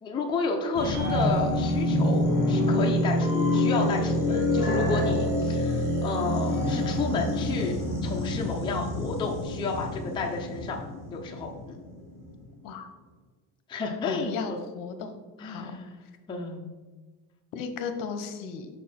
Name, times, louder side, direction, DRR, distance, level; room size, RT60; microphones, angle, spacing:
voice 1, 0.0-7.8 8.0-10.8 11.1-11.8 13.7-14.6 15.4-16.0 16.3-16.7, left 4 dB, 15° left, 0 dB, 0.4 m, -31 dB
sound 1, 0.7-11.8 12.2-12.3, left 1 dB, 5° right, 1.3 m, -26 dB
voice 2, 14.0-15.7 17.5-18.7, left 5 dB, 65° left, 8 dB, 0.8 m, -35 dB
6.0 x 4.6 x 4.2 m, 1.3 s
cardioid pair, 170°, 36 cm